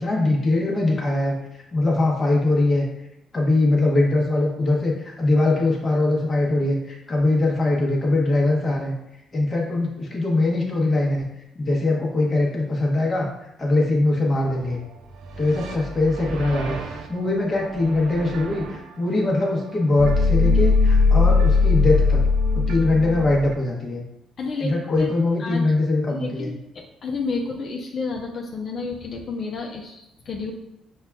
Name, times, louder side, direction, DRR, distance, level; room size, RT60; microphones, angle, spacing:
voice 1, 0.0-1.3 1.7-2.8 3.3-8.9 9.3-11.3 11.5-13.3 13.6-14.8 15.4-16.8 17.1-22.2 22.5-24.0 24.6-26.5, left 2 dB, 35° left, -3 dB, 0.9 m, -21 dB
sound 1, 14.5-14.8 15.0-18.8 20.0-23.5, left 4 dB, 75° right, 0.4 m, -21 dB
voice 2, 24.4-24.7 25.0-25.1 25.4-25.6 26.1-30.5, left 4 dB, 55° left, 0 dB, 0.5 m, -30 dB
5.5 x 2.3 x 2.2 m, 0.85 s
supercardioid pair, 75°, 0 cm